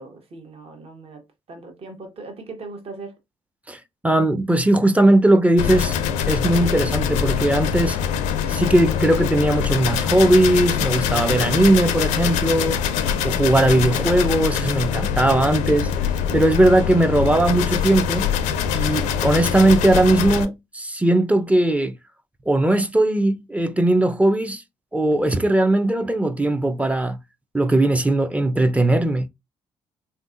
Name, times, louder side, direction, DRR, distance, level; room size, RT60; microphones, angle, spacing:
voice 1, 0.0-3.1, right 3 dB, 50° right, 1.0 m, -39 dB
voice 2, 3.7-5.9 6.3-8.0 8.5-12.8 13.2-15.9 16.3-18.3 18.7-21.9 22.5-24.6 24.9-27.2 27.5-29.3, right 1 dB, 10° right, 0.5 m, -19 dB
sound 1, 5.6-20.5, left 8 dB, 75° left, 0.4 m, -23 dB
3.4 x 2.5 x 2.5 m
hypercardioid pair, 50°, 13 cm